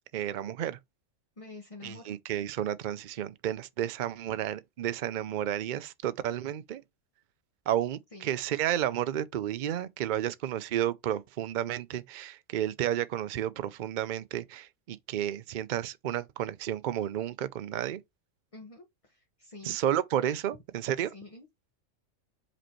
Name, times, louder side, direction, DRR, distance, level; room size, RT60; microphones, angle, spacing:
voice 1, 0.1-0.8 1.8-6.8 7.7-18.0 19.6-21.1, right 11 dB, 55° right, 0.5 m, -32 dB
voice 2, 1.4-2.1 8.1-8.3 10.2-10.3 18.5-19.8 21.0-21.5, left 3 dB, 25° left, 1.1 m, -48 dB
5.2 x 4.3 x 4.4 m
omnidirectional pair, 1.4 m